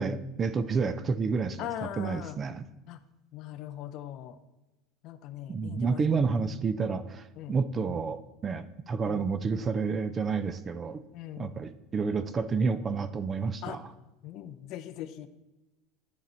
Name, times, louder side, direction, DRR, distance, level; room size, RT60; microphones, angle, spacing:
voice 1, 0.0-1.7 2.0-2.6 5.5-11.0 11.4-13.9, right 5 dB, 20° right, 13 dB, 0.3 m, -30 dB
voice 2, 1.6-2.4 2.9-3.0 3.3-4.4 5.0-6.1 7.4-7.6 9.1-9.3 11.1-11.6 13.6-13.8 14.2-15.3, left 12 dB, 45° left, 12 dB, 0.5 m, -40 dB
11.0 x 4.0 x 4.3 m, 1.0 s
cardioid pair, 165°, 0 cm